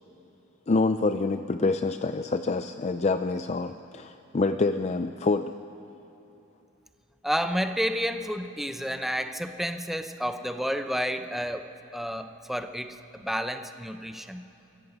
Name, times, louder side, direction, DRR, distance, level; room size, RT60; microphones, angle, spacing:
voice 1, 0.7-5.5, left 3 dB, 35° left, 9 dB, 0.4 m, -26 dB
voice 2, 7.2-11.7 11.9-14.5, equal, ahead, 8 dB, 0.7 m, -30 dB
29.0 x 14.0 x 8.0 m, 3.0 s
head